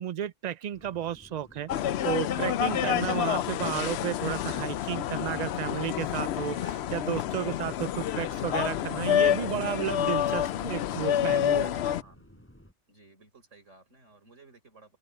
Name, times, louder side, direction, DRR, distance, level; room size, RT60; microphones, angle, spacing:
voice 1, 0.0-1.7 2.0-12.0, right 10 dB, 55° right, 0.4 m, -33 dB
sound 1, 0.7-12.7, equal, 10° left, 4.6 m, -55 dB
sound 2, 1.7-12.0, left 10 dB, 65° left, 0.8 m, -28 dB
voice 2, 7.4-7.7 12.0-12.5 12.9-15.0, right 2 dB, 75° right, 5.3 m, -56 dB
open air
omnidirectional pair, 1.3 m